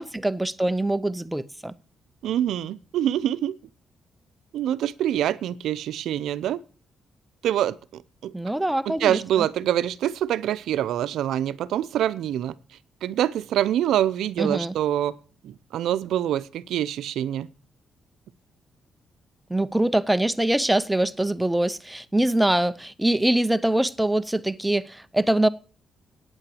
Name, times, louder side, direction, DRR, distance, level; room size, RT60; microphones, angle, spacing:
voice 1, 0.0-1.7 8.3-9.5 14.4-14.7 19.5-25.5, right 1 dB, 5° right, 0.6 m, -23 dB
voice 2, 2.2-3.6 4.5-6.6 7.4-8.3 8.9-12.5 13.0-15.1 15.4-17.5, right 11 dB, 85° right, 0.6 m, -25 dB
9.1 x 8.8 x 7.7 m
cardioid pair, 95°, 0 cm